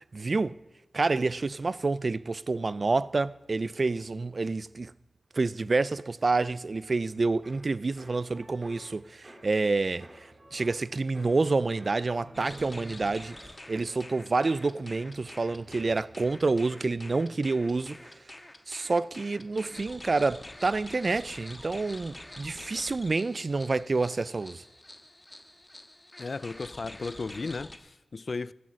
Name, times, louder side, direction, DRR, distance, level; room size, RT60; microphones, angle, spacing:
voice 1, 0.1-0.6 0.9-4.9 5.3-18.0 18.7-24.6, right 3 dB, 55° right, 0.4 m, -28 dB
sound 1, 6.9-18.5 18.8-19.3, right 1 dB, 35° right, 3.3 m, -53 dB
sound 2, 12.3-27.8, left 1 dB, 20° left, 1.4 m, -47 dB
voice 2, 26.2-28.5, left 4 dB, 65° left, 0.4 m, -35 dB
15.5 x 9.4 x 6.4 m
wide cardioid pair, 80°, 0 cm